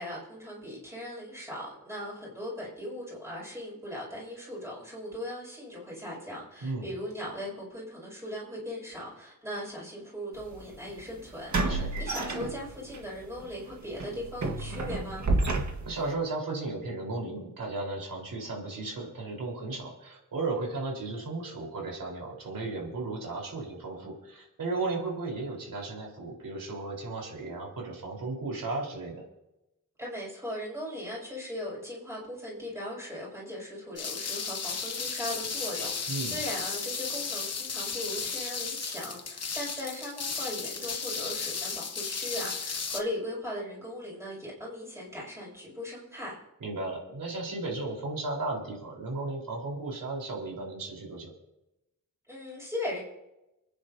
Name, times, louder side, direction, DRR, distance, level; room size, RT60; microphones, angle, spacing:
voice 1, 0.0-15.3 30.0-46.4 52.3-53.0, left 1 dB, 10° right, -6 dB, 6.5 m, -38 dB
sound 1, 10.4-10.5 11.5-13.0 13.4-13.6 14.0-16.1, right 2 dB, 60° right, 1.7 m, -30 dB
voice 2, 15.8-29.2 36.1-36.4 46.6-51.3, right 3 dB, 90° right, -2 dB, 4.4 m, -35 dB
sound 2, 34.0-43.0, left 5 dB, 50° left, 1.2 m, -34 dB
30.0 x 10.0 x 2.8 m, 0.94 s
wide cardioid pair, 150°, 32 cm